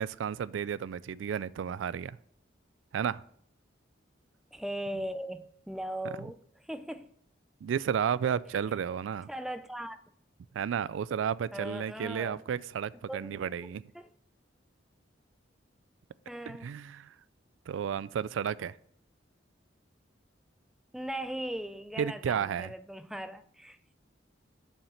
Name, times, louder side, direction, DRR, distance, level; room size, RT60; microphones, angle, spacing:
voice 1, 0.0-2.2 2.9-3.2 7.6-9.3 10.5-13.8 16.5-17.1 17.7-18.7 22.0-22.7, right 8 dB, 90° right, 0.3 m, -32 dB
voice 2, 4.5-7.1 9.3-10.0 11.5-12.4 13.1-14.1 16.3-16.7 20.9-24.0, right 1 dB, ahead, 0.4 m, -39 dB
7.3 x 5.7 x 7.0 m
head